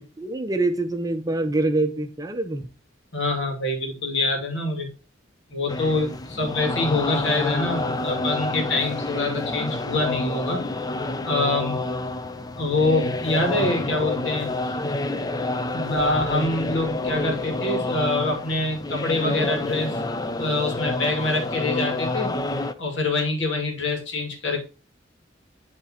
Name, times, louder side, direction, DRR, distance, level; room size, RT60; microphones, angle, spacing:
voice 1, 0.0-2.7, right 2 dB, 20° right, 0.6 m, -25 dB
voice 2, 3.1-4.9 5.5-10.7 11.2-11.8 12.6-14.8 15.7-20.0 20.4-22.3 22.8-24.6, left 2 dB, 65° left, 2.5 m, -25 dB
sound 1, 5.7-22.7, left 2 dB, 20° left, 0.4 m, -28 dB
10.5 x 3.7 x 4.2 m
head